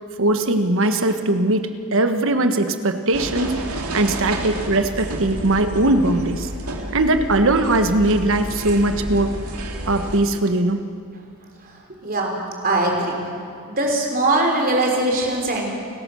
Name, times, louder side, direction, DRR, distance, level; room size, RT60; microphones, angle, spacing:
voice 1, 0.2-3.6 3.9-6.5 6.9-9.3 9.9-10.8, right 2 dB, 60° right, 8 dB, 1.4 m, -20 dB
sound 1, 3.1-10.2, right 1 dB, 90° right, 2.4 m, -30 dB
voice 2, 12.0-12.3 12.6-13.2 13.7-15.7, right 2 dB, 40° right, 1 dB, 3.8 m, -21 dB
29.5 x 14.0 x 6.4 m, 2.5 s
head